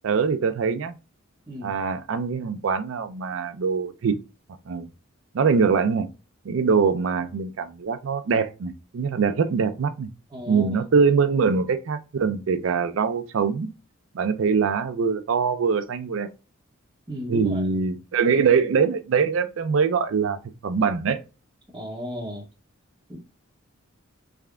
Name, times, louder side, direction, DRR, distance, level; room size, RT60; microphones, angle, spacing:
voice 1, 0.0-0.9 1.6-4.1 4.7-4.9 5.3-6.1 6.4-10.1 10.5-13.7 14.1-16.3 17.3-21.2, right 5 dB, 65° right, 0.4 m, -23 dB
voice 2, 1.5-1.8 10.3-10.9 17.1-17.6 21.7-22.4 23.1-23.2, equal, 20° right, 0.6 m, -34 dB
3.5 x 3.3 x 2.3 m
head